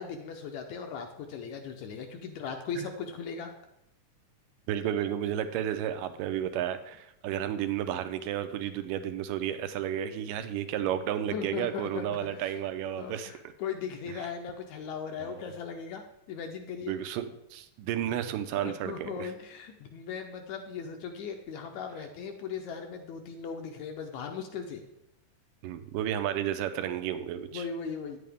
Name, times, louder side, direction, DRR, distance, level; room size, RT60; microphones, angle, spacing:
voice 1, 0.0-3.5 11.3-12.5 13.0-16.0 16.3-16.9 18.5-24.8 27.5-28.2, left 6 dB, 75° left, 4 dB, 1.8 m, -38 dB
voice 2, 4.7-13.3 14.2-14.3 15.2-15.4 16.8-19.3 25.6-27.7, right 10 dB, 85° right, 8 dB, 2.2 m, -32 dB
9.3 x 8.4 x 3.5 m, 0.83 s
omnidirectional pair, 3.8 m